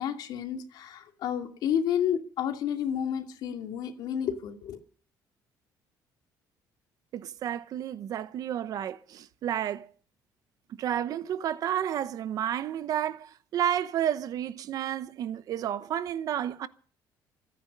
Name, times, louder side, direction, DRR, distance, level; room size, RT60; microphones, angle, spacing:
voice 1, 0.0-4.8, left 9 dB, 65° left, 2.5 m, -30 dB
voice 2, 7.1-9.9 10.8-16.7, right 10 dB, 55° right, 0.9 m, -31 dB
25.0 x 9.6 x 5.3 m
cardioid pair, 150°, 8 cm